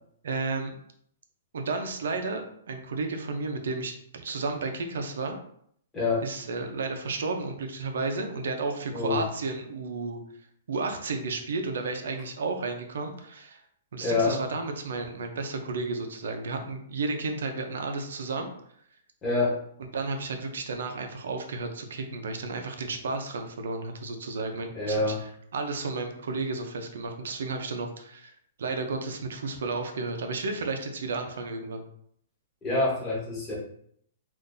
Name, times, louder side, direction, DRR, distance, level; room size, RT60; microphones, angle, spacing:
voice 1, 0.2-0.8 1.5-5.4 6.2-10.2 10.7-13.6 13.9-18.5 19.9-31.8, right 3 dB, 75° right, 5 dB, 0.6 m, -32 dB
voice 2, 5.9-6.3 8.9-9.2 14.0-14.4 19.2-19.6 24.7-25.2 32.6-33.5, left 3 dB, 10° left, -5 dB, 0.8 m, -26 dB
2.6 x 2.5 x 3.8 m, 0.67 s
hypercardioid pair, 175°, 0 cm